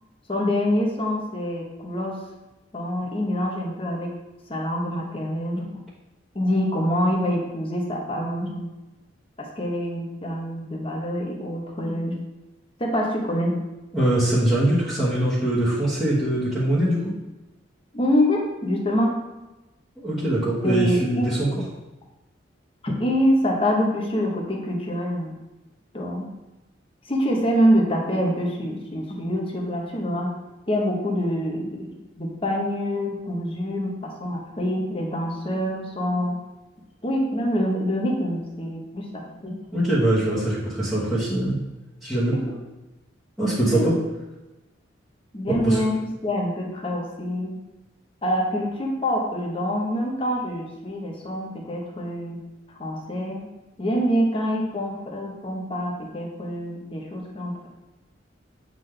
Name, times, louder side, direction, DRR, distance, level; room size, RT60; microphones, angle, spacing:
voice 1, 0.3-2.2 2.7-4.1 4.5-5.8 6.3-8.7 9.4-12.2 12.8-13.6 17.9-19.2 20.6-21.3 22.8-25.3 25.9-26.3 27.0-30.3 30.7-36.4 37.0-39.5 42.3-42.6 43.7-43.9 45.3-45.9 46.2-47.6 48.2-52.4 52.7-53.5 53.8-57.7, equal, 30° left, 0 dB, 1.0 m, -25 dB
voice 2, 13.9-17.0 20.0-21.5 39.7-41.6 42.0-42.3 43.4-44.0 45.5-45.8, right 1 dB, 5° right, -14 dB, 1.4 m, -22 dB
8.3 x 3.8 x 3.3 m, 1.0 s
head